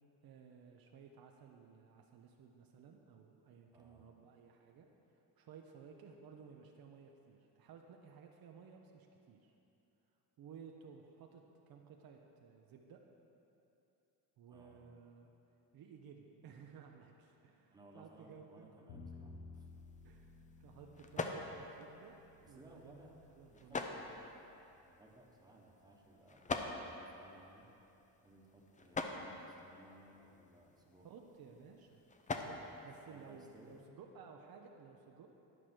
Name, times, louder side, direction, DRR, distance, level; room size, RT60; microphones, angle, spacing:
voice 1, 0.2-4.9 5.1-9.5 10.4-13.0 14.4-15.3 15.7-18.9 20.0-20.3 20.6-22.2 22.5-23.0 23.4-24.0 31.0-32.0 32.4-35.3, right 6 dB, 55° right, 2 dB, 0.8 m, -57 dB
voice 2, 3.7-4.1 14.5-14.9 17.7-19.7 22.4-23.2 23.5-24.5 24.8-27.7 28.2-31.1 33.0-33.8, right 1 dB, 10° right, -1 dB, 1.2 m, -61 dB
Bowed string instrument, 18.9-25.1, left 3 dB, 75° left, 1.5 m, -57 dB
sound 1, 19.5-33.9, left 3 dB, 20° left, 0.5 m, -46 dB
11.0 x 4.9 x 6.1 m, 2.9 s
cardioid pair, 115°, 42 cm